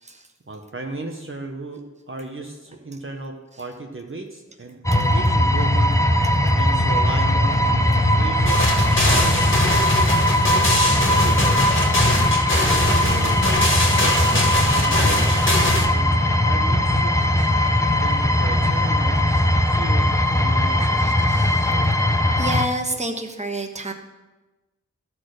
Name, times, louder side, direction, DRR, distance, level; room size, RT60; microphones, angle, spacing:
voice 1, 0.5-6.0 6.5-9.6 10.9-11.9 12.7-17.2 18.0-21.2 21.6-21.9, right 2 dB, 40° right, 2 dB, 0.9 m, -35 dB
sound 1, 4.8-22.7, left 1 dB, 10° left, 0.7 m, -19 dB
sound 2, 8.5-15.9, left 1 dB, 40° left, 1.9 m, -22 dB
voice 2, 21.0-21.7 22.4-23.9, right 1 dB, 20° right, 4 dB, 1.1 m, -30 dB
12.0 x 4.3 x 6.4 m, 1.1 s
wide cardioid pair, 50°, 31 cm